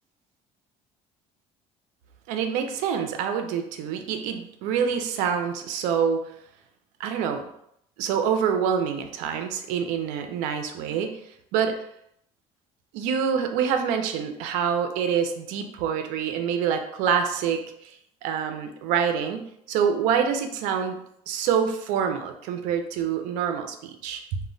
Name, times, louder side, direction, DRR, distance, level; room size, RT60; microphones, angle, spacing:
voice 1, 2.3-6.2 7.0-7.4 8.0-11.2 11.5-11.7 12.9-17.9 18.2-19.4 19.7-21.0 21.3-24.4, right 7 dB, 85° right, 6 dB, 0.4 m, -26 dB
2.1 x 2.1 x 3.7 m, 0.73 s
cardioid pair, 120°, 13 cm